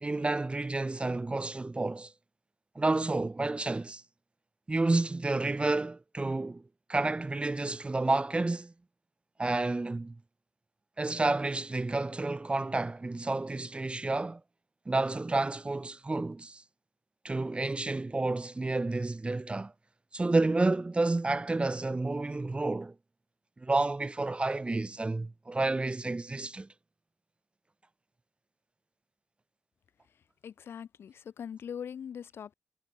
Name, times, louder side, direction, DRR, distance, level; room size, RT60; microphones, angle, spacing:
voice 1, 0.0-2.1 2.7-4.0 4.7-6.6 6.9-8.7 9.4-10.1 11.0-14.4 14.9-16.6 17.2-19.7 20.1-22.9 23.6-26.7, right 2 dB, 25° right, 1.2 m, -30 dB
voice 2, 30.1-32.5, left 8 dB, 80° left, 4.8 m, -42 dB
cardioid pair, 60°, 4 cm